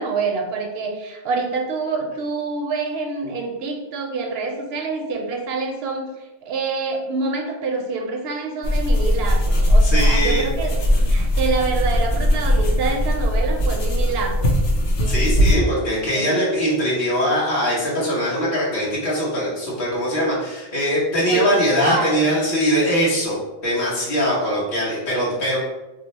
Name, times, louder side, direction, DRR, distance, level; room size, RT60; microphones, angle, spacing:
voice 1, 0.0-6.1 6.5-14.6 15.0-15.8 16.1-16.5 21.3-22.3, right 3 dB, 75° right, 3 dB, 0.8 m, -26 dB
sound 1, 8.6-15.5, equal, 70° left, 0.8 m, -19 dB
voice 2, 9.8-10.5 15.0-25.6, equal, 55° left, -8 dB, 1.1 m, -21 dB
2.7 x 2.0 x 4.0 m, 1.0 s
omnidirectional pair, 1.1 m